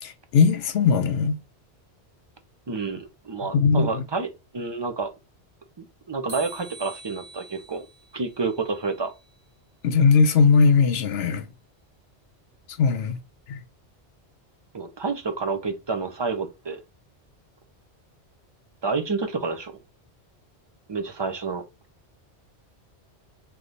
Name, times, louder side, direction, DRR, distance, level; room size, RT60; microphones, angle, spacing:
voice 1, 0.0-1.4 3.5-4.0 9.8-11.5 12.8-13.2 13.5-13.6, left 5 dB, 70° left, 0.9 m, -19 dB
voice 2, 2.7-4.3 4.5-5.1 5.8-7.8 8.1-9.1 14.7-16.8 18.8-19.8 20.9-21.6, right 4 dB, 30° right, 0.5 m, -29 dB
sound 1, 6.3-9.4, right 3 dB, 85° right, 1.7 m, -45 dB
3.5 x 3.0 x 3.8 m
omnidirectional pair, 1.1 m